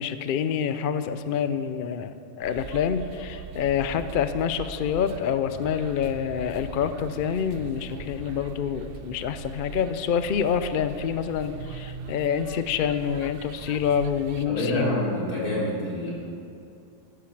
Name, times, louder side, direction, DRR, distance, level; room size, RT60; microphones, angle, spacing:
voice 1, 0.0-15.1, left 8 dB, 65° left, 11 dB, 0.5 m, -27 dB
sound 1, 2.4-14.5, right 6 dB, 60° right, 0.6 m, -41 dB
voice 2, 14.5-16.1, left 1 dB, 85° left, -6 dB, 3.9 m, -27 dB
13.5 x 11.5 x 4.6 m, 2.5 s
omnidirectional pair, 1.5 m